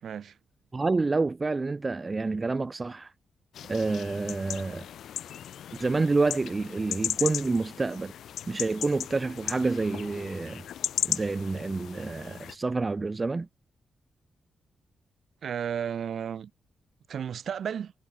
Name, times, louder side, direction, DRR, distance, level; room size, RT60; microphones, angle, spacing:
voice 1, 0.0-0.4 15.4-16.5 17.1-17.9, right 8 dB, 55° right, 2.1 m, -33 dB
voice 2, 0.7-3.1 3.7-4.8 5.8-8.1 8.5-10.6 11.1-13.5, right 3 dB, 20° right, 1.3 m, -28 dB
sound 1, 3.5-12.5, left 10 dB, 85° left, 0.6 m, -36 dB
wide cardioid pair, 180°, 0 cm